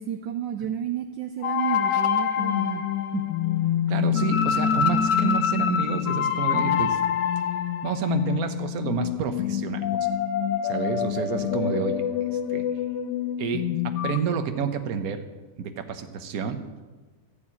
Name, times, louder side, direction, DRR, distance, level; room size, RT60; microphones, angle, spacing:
voice 1, 0.0-2.9 3.1-3.3, right 10 dB, 70° right, 8 dB, 1.2 m, -31 dB
sound 1, 1.4-14.2, left 9 dB, 65° left, 1.2 m, -25 dB
voice 2, 3.9-7.0 7.8-9.9 10.6-11.9 12.5-12.6 13.4-15.2 15.6-16.6, right 7 dB, 50° right, 7 dB, 1.3 m, -29 dB
13.0 x 7.2 x 8.6 m, 1.3 s
omnidirectional pair, 2.3 m